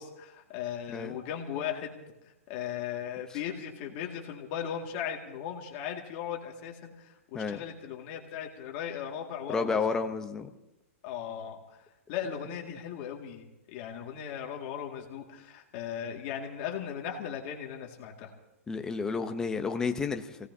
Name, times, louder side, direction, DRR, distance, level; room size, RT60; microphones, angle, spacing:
voice 1, 0.0-1.9 2.5-10.0 11.0-11.8 12.1-18.3, left 9 dB, 35° left, 1 dB, 2.1 m, -37 dB
voice 2, 9.5-10.5 18.7-20.4, left 5 dB, 10° left, 6 dB, 0.7 m, -31 dB
28.0 x 17.5 x 2.8 m, 0.95 s
hypercardioid pair, 165°, 8 cm